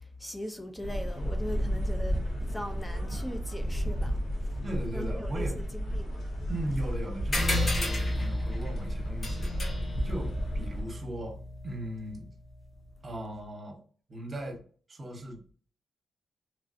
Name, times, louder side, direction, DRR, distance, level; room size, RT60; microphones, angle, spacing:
voice 1, 0.2-2.2 2.5-4.1 4.9-5.4 5.9-6.2, equal, 5° left, 0.5 m, -39 dB
sound 1, 0.8-10.8, equal, 85° left, 1.3 m, -33 dB
voice 2, 4.6-5.7 6.5-9.6 10.0-12.3 13.0-13.8 14.1-14.6 14.9-15.4, right 1 dB, 35° right, 1.0 m, -38 dB
sound 2, 7.3-12.2, left 1 dB, 40° left, 1.1 m, -32 dB
3.1 x 2.6 x 2.6 m
wide cardioid pair, 135°, 0 cm